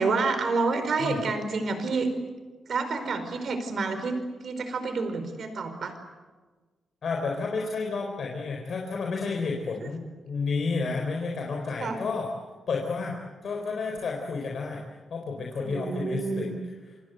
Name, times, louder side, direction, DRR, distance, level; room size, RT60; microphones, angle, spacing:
voice 1, 0.0-2.1 2.7-4.1 4.4-5.9 11.8-12.0 15.6-16.5, right 4 dB, 55° right, 9 dB, 4.7 m, -28 dB
voice 2, 7.0-12.3 12.7-14.8 15.1-16.5, left 4 dB, 55° left, 1 dB, 4.0 m, -31 dB
27.5 x 26.0 x 8.1 m, 1.3 s
wide cardioid pair, 145°, 0 cm